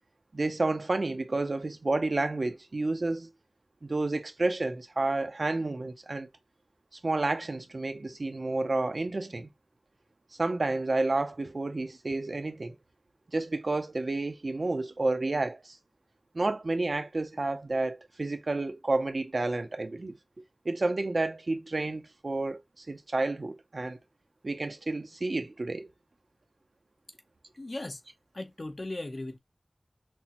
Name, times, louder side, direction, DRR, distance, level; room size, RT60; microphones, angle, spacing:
voice 1, 0.3-3.3 3.8-6.3 7.0-9.5 10.4-12.8 13.3-15.8 16.3-20.2 20.6-24.0 24.4-25.9, right 2 dB, 75° right, 0.6 m, -30 dB
voice 2, 27.6-28.0 28.3-29.4, left 2 dB, 60° left, 0.8 m, -37 dB
6.0 x 2.1 x 2.9 m
wide cardioid pair, 50°, 0 cm